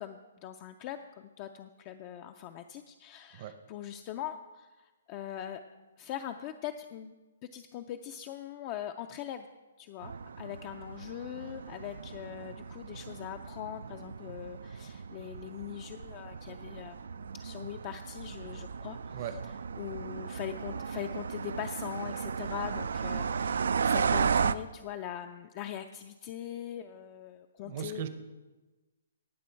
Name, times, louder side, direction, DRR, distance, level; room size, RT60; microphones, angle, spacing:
voice 1, 0.0-5.6 6.0-7.1 7.5-9.5 9.8-17.1 17.4-28.0, left 10 dB, 25° left, 7 dB, 0.4 m, -41 dB
sound 1, 10.0-24.5, right 6 dB, 75° right, 0.4 m, -35 dB
voice 2, 27.7-28.1, right 10 dB, 35° right, 9 dB, 0.7 m, -37 dB
18.0 x 6.1 x 4.5 m, 1.2 s
hypercardioid pair, 165°, 0 cm